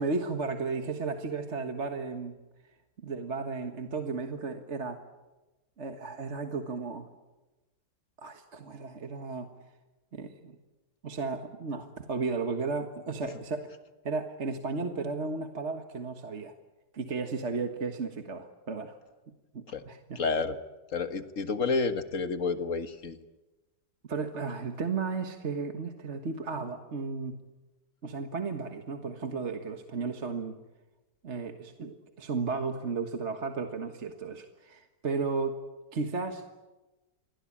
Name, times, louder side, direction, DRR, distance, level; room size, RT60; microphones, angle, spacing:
voice 1, 0.0-2.3 3.0-5.0 5.8-7.1 8.2-9.5 10.1-10.6 11.0-13.7 14.0-16.5 16.9-18.9 19.3-20.2 24.0-27.4 28.0-30.6 31.2-35.6 35.9-36.4, right 4 dB, 45° right, 6 dB, 1.7 m, -34 dB
voice 2, 20.2-20.6 20.9-23.2, left 4 dB, 50° left, 9 dB, 1.9 m, -30 dB
29.0 x 23.5 x 8.7 m, 1.1 s
omnidirectional pair, 1.8 m